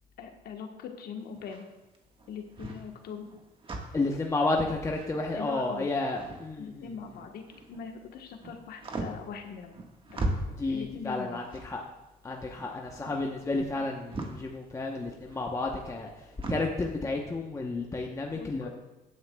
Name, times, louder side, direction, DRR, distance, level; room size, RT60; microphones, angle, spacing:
voice 1, 0.2-1.7 2.3-3.3 5.4-5.9 6.6-9.7 10.1-10.2 10.7-11.6 18.3-18.7, left 6 dB, 65° left, 4 dB, 1.2 m, -41 dB
sound 1, 1.2-7.9 8.2-16.8, right 2 dB, 30° right, 1.5 m, -39 dB
voice 2, 3.9-6.9 10.6-11.8 12.2-16.1 16.5-18.7, left 2 dB, 20° left, 1 dB, 0.9 m, -31 dB
16.5 x 9.5 x 2.3 m, 1.0 s
cardioid pair, 110°, 17 cm